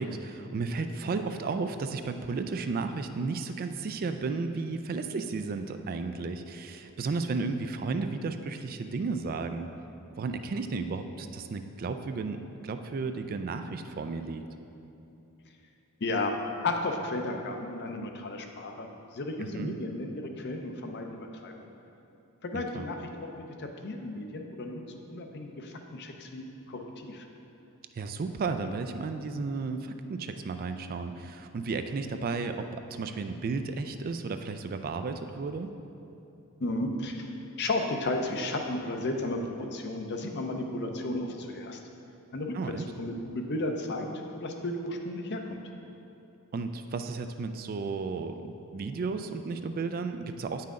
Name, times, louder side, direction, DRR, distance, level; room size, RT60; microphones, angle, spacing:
voice 1, 0.0-9.7 10.2-14.4 19.4-19.7 22.5-22.9 27.9-35.7 42.5-42.9 46.5-50.6, right 4 dB, 40° right, 8 dB, 0.3 m, -33 dB
voice 2, 16.0-16.3 16.6-21.7 22.4-24.8 25.1-27.2 36.6-37.3 37.6-41.8 42.3-42.6 43.0-44.1 44.3-45.6, left 2 dB, 50° left, 3 dB, 0.6 m, -34 dB
8.7 x 5.7 x 3.7 m, 2.9 s
head